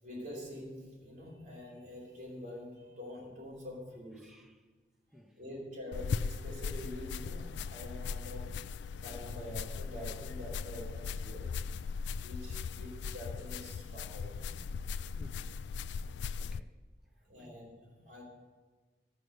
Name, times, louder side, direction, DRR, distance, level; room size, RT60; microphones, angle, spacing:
voice 1, 0.0-4.3 5.4-8.6 9.0-11.5 12.2-14.6 17.2-18.2, left 1 dB, 50° right, 4.1 m, -46 dB
voice 2, 4.1-4.7 5.1-5.4 15.2-15.6 16.4-16.8 17.2-17.6 18.0-18.1, equal, ahead, 1.0 m, -57 dB
sound 1, 5.9-16.6, left 5 dB, 80° left, 0.3 m, -39 dB
15.5 x 6.2 x 6.7 m
head